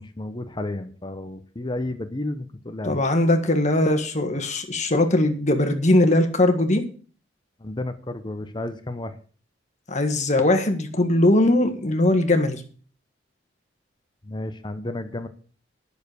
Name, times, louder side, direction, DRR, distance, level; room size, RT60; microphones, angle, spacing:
voice 1, 0.0-3.0 7.6-9.2 14.2-15.3, left 1 dB, 25° left, 10 dB, 0.8 m, -32 dB
voice 2, 2.8-6.8 9.9-12.6, left 1 dB, 40° left, 6 dB, 1.7 m, -20 dB
10.5 x 6.9 x 6.7 m, 0.41 s
head